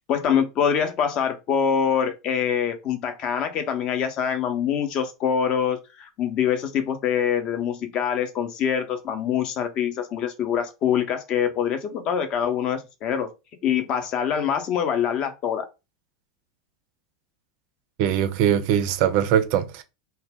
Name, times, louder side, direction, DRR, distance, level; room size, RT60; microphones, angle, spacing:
voice 1, 0.0-13.3 13.6-15.7, left 8 dB, 45° left, 0.5 m, -24 dB
voice 2, 18.0-19.8, right 9 dB, 55° right, 0.3 m, -21 dB
2.1 x 2.0 x 3.5 m
hypercardioid pair, 90°, 2 cm